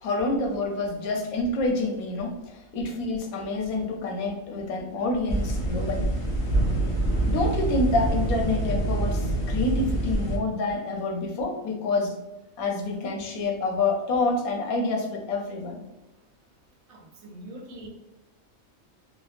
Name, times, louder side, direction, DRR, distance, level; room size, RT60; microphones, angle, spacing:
voice 1, 0.0-6.1 7.3-12.1 12.6-15.8, left 2 dB, 90° left, 1 dB, 1.1 m, -27 dB
sound 1, 5.3-10.4, right 1 dB, 60° left, 0.3 m, -26 dB
voice 2, 16.9-17.9, right 1 dB, 80° right, 0 dB, 1.1 m, -43 dB
3.4 x 2.0 x 2.4 m, 1.0 s
omnidirectional pair, 1.4 m